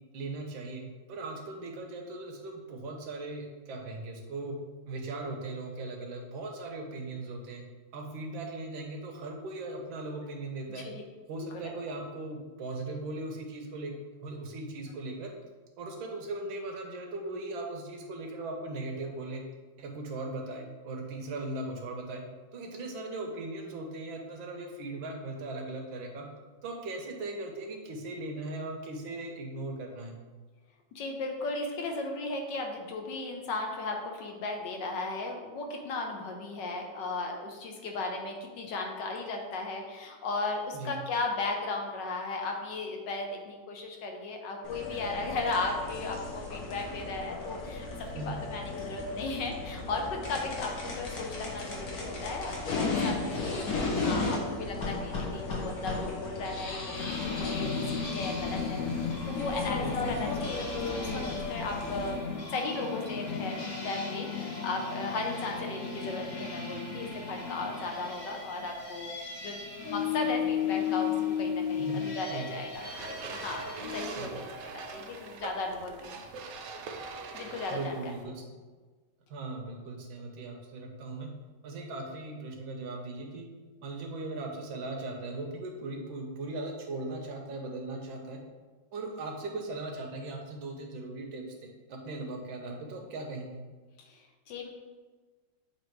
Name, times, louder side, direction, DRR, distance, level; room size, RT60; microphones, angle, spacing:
voice 1, 0.1-0.8 1.1-4.6 4.9-7.6 7.9-10.9 11.3-13.9 14.2-15.3 15.8-19.4 19.8-22.2 22.5-26.3 26.6-30.1 40.7-40.9 48.1-48.4 57.6-57.8 59.8-60.2 71.8-72.5 73.9-74.5 77.7-78.6 79.3-81.3 81.6-83.5 83.8-88.4 88.9-93.6, right 2 dB, 90° right, 2 dB, 1.7 m, -38 dB
voice 2, 30.9-62.2 62.5-73.6 73.9-76.2 77.3-78.1 94.0-94.7, left 3 dB, 70° left, 2 dB, 1.4 m, -36 dB
sound 1, 44.6-62.1, left 3 dB, 55° left, 1.5 m, -35 dB
sound 2, 56.9-74.1, left 6 dB, 35° left, 0.7 m, -35 dB
sound 3, 72.7-78.2, right 4 dB, 70° right, 0.8 m, -42 dB
7.5 x 2.9 x 4.5 m, 1.4 s
omnidirectional pair, 2.1 m